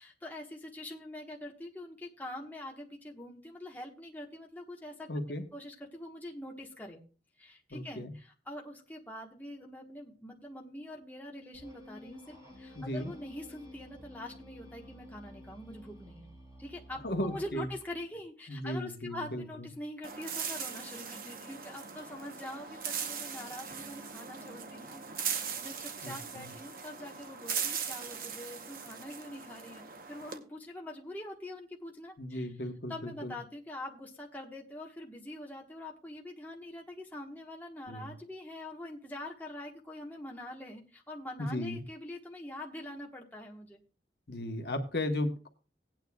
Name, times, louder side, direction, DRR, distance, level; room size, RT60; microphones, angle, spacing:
voice 1, 0.0-5.1 5.5-7.0 7.4-16.3 16.6-32.5 32.9-43.8, left 1 dB, 10° left, 0 dB, 1.3 m, -44 dB
voice 2, 5.1-5.4 7.7-8.1 12.7-13.1 17.0-17.7 18.5-19.7 26.0-26.5 32.2-33.3 37.9-38.1 41.4-41.8 44.3-45.5, left 1 dB, 65° left, 5 dB, 1.2 m, -35 dB
sound 1, 11.5-18.1, left 1 dB, 20° right, 2.6 m, -52 dB
sound 2, 20.0-30.4, right 7 dB, 50° right, 0.9 m, -39 dB
17.5 x 9.1 x 2.3 m, 0.35 s
head